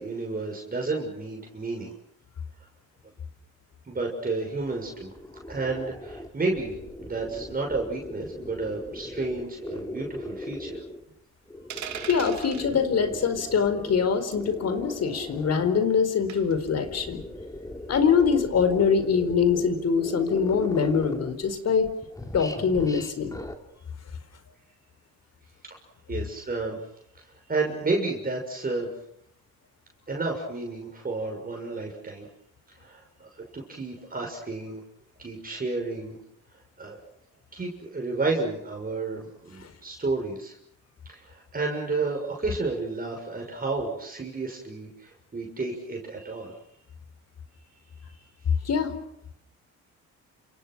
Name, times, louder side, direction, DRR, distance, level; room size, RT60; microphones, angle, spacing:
voice 1, 0.0-1.9 3.9-5.1 5.5-10.8 25.7-25.8 26.1-26.8 27.5-28.9 30.1-32.3 32.8-33.3 33.5-34.8 35.2-36.2 36.8-37.0 37.5-40.6 41.1-46.5 48.1-48.2, right 3 dB, 30° right, 1 dB, 6.5 m, -31 dB
sound 1, 4.5-11.0 11.5-15.8 16.4-21.6 21.8-23.6, left 1 dB, 10° left, 3.3 m, -38 dB
sound 2, 11.7-12.7 14.3-14.5 16.3-16.6, right 9 dB, 65° right, 3.0 m, -38 dB
voice 2, 12.1-17.2 17.9-21.9 22.3-23.4 39.6-39.7 48.6-48.9, left 6 dB, 55° left, 10 dB, 4.6 m, -24 dB
29.5 x 27.0 x 6.3 m, 0.75 s
cardioid pair, 90°, 30 cm